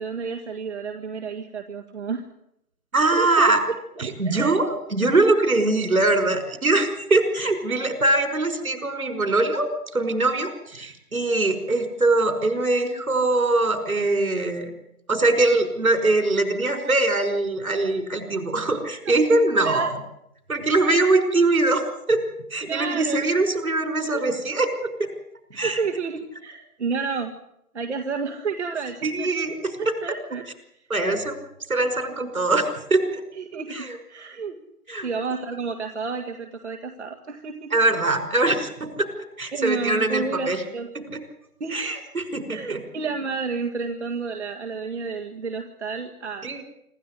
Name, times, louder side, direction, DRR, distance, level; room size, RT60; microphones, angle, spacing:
voice 1, 0.0-2.3 3.1-3.5 4.0-4.6 19.6-19.9 20.8-21.0 22.6-23.3 24.1-24.2 25.6-27.3 27.7-29.3 29.8-30.4 31.0-31.1 33.3-34.6 35.0-37.7 39.5-41.1 41.6-41.9 42.5-46.5, right 5 dB, 50° right, 4 dB, 2.1 m, -30 dB
voice 2, 2.9-3.6 4.0-9.7 9.9-14.7 15.1-20.0 20.5-21.8 22.1-22.2 22.5-24.7 25.0-25.1 25.5-25.8 29.0-29.5 30.9-31.3 31.7-33.2 33.7-34.0 34.9-35.1 37.7-39.1 39.4-40.6 41.1-41.2 41.7-42.8 46.4-46.6, right 2 dB, 70° right, 8 dB, 5.8 m, -22 dB
26.5 x 13.5 x 9.9 m, 0.78 s
figure-of-eight pair, 145°, 44 cm